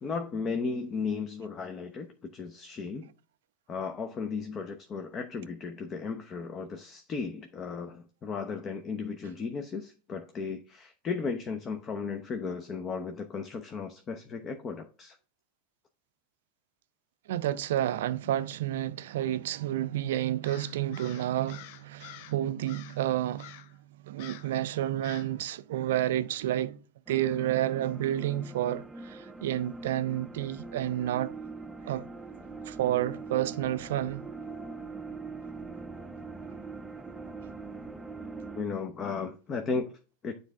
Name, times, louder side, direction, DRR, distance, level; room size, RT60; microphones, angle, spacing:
voice 1, 0.0-3.1 3.7-15.2 38.6-40.0 40.2-40.4, left 5 dB, 30° left, 0.9 m, -35 dB
voice 2, 17.3-23.6 24.0-26.8 27.1-31.3 31.9-32.1 32.7-34.3, right 12 dB, 65° right, 0.5 m, -30 dB
Crow, 20.4-22.4 22.7-23.0 23.4-23.8 24.2-24.6 25.0-25.4, left 11 dB, 55° left, 0.5 m, -48 dB
sound 1, 27.1-38.6, right 3 dB, 10° right, 0.6 m, -42 dB
9.5 x 3.9 x 3.5 m
figure-of-eight pair, 85°, 0 cm